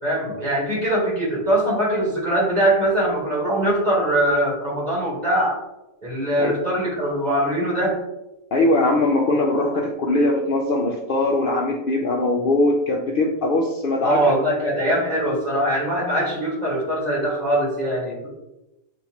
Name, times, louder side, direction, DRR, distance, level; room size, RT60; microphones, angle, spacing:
voice 1, 0.0-5.6 6.0-8.0 14.0-18.3, right 1 dB, 30° right, -6 dB, 1.6 m, -22 dB
voice 2, 8.5-14.4, left 2 dB, 75° left, 0 dB, 0.5 m, -21 dB
6.9 x 2.6 x 2.8 m, 0.96 s
omnidirectional pair, 1.5 m